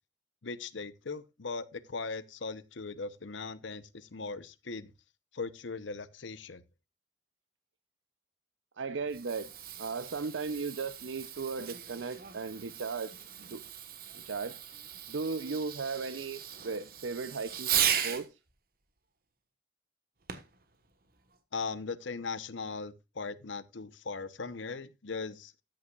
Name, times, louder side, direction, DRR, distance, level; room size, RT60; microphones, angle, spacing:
voice 1, 0.4-4.9 5.3-6.6 21.5-25.5, left 4 dB, 85° left, 0.8 m, -39 dB
voice 2, 8.8-9.5 9.8-13.1 13.4-13.6 14.1-14.6 15.1-17.7 18.0-18.4, right 4 dB, 85° right, 0.6 m, -36 dB
Fireworks, 8.9-18.3 20.3-20.6 21.3-21.4, right 9 dB, 50° right, 1.3 m, -37 dB
13.0 x 9.7 x 2.4 m
head